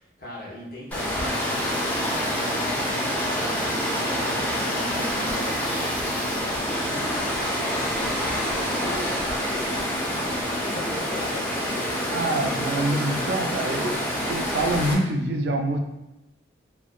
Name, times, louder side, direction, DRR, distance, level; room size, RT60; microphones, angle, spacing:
voice 1, 0.0-9.7 10.0-12.1 12.7-13.0, left 1 dB, 55° left, -6 dB, 0.8 m, -40 dB
Water, 0.9-14.9, equal, 10° left, 0.4 m, -27 dB
voice 2, 12.1-14.0 14.3-15.8, right 2 dB, 70° right, 3 dB, 0.3 m, -26 dB
2.5 x 2.1 x 2.4 m, 0.96 s
head